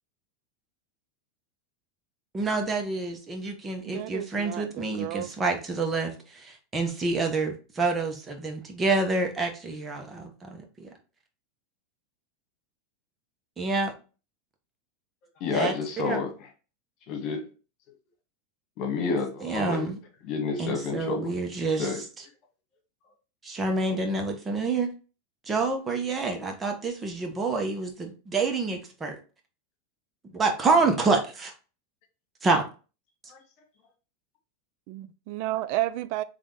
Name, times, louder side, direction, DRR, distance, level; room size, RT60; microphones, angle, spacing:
voice 1, 2.3-10.9 13.6-13.9 15.5-15.7 16.0-16.2 19.0-19.1 19.4-20.0 20.6-21.9 23.4-24.9 25.5-29.2 30.3-31.5 32.4-32.6, right 3 dB, 20° right, 1.1 m, -27 dB
voice 2, 3.9-5.6 34.9-36.2, right 15 dB, 60° right, 0.4 m, -32 dB
voice 3, 15.4-16.3 17.1-17.5 18.8-19.9 20.3-21.3 21.8-22.0 33.3-33.4, left 4 dB, 50° left, 1.7 m, -29 dB
3.6 x 3.4 x 4.0 m
supercardioid pair, 125°, 0 cm